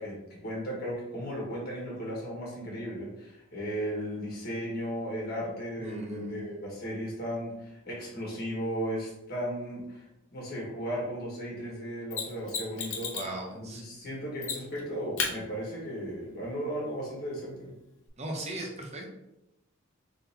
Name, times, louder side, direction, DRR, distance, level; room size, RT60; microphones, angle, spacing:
voice 1, 0.0-10.1 10.3-13.1 13.5-17.7, equal, 45° left, -4 dB, 1.5 m, -35 dB
voice 2, 5.8-6.5 13.1-13.8 18.2-19.1, right 1 dB, 30° right, 0 dB, 0.7 m, -38 dB
Mechanisms, 12.1-13.4 14.4-14.8 15.2-15.3 18.1-18.2, left 5 dB, 60° left, 0.8 m, -33 dB
3.9 x 3.8 x 2.8 m, 0.90 s
head